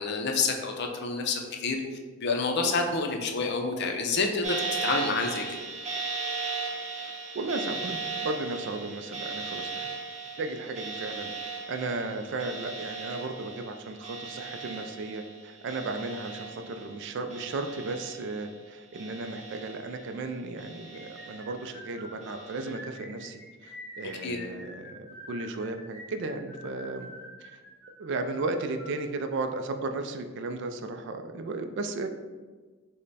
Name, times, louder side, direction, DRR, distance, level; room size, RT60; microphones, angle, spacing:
voice 1, 0.0-1.8 2.2-4.6 4.8-5.4 24.2-24.4, left 4 dB, 50° left, 3 dB, 0.5 m, -28 dB
sound 1, 4.4-17.0 17.3-18.5 18.9-20.1 20.6-21.6 22.2-22.7, right 4 dB, 30° right, 0.9 m, -37 dB
voice 2, 6.9-9.9 10.4-27.1 27.4-27.5 28.0-32.1, right 3 dB, 55° right, 7 dB, 0.3 m, -35 dB
sound 2, 20.9-29.0, equal, 10° left, 1.3 m, -46 dB
5.2 x 2.1 x 4.0 m, 1.4 s
head